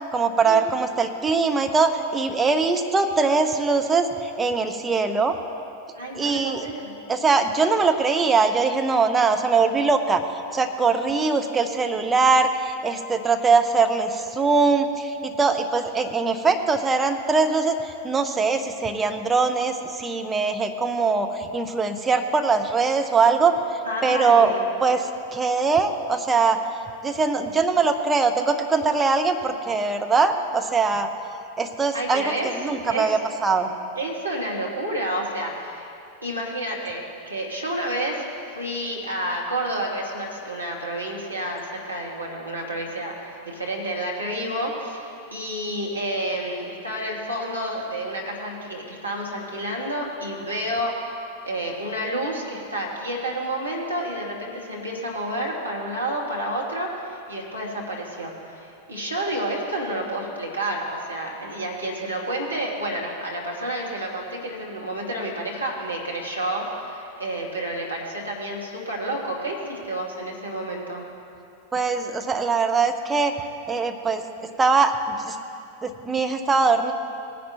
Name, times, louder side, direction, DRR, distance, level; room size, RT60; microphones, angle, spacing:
voice 1, 0.1-5.4 6.1-6.7 7.1-10.2 10.5-23.6 24.0-24.5 24.8-26.6 27.0-31.1 31.6-33.7 71.7-73.3 73.7-74.2 74.6-75.4 75.8-76.9, right 4 dB, 15° right, 5 dB, 0.8 m, -22 dB
voice 2, 6.0-6.9 23.9-24.7 31.9-32.5 32.8-33.1 34.0-35.9 36.2-38.3 38.5-50.9 51.4-71.1, right 1 dB, 85° right, -3 dB, 2.0 m, -30 dB
18.5 x 10.0 x 3.0 m, 2.6 s
figure-of-eight pair, 90°, 0 cm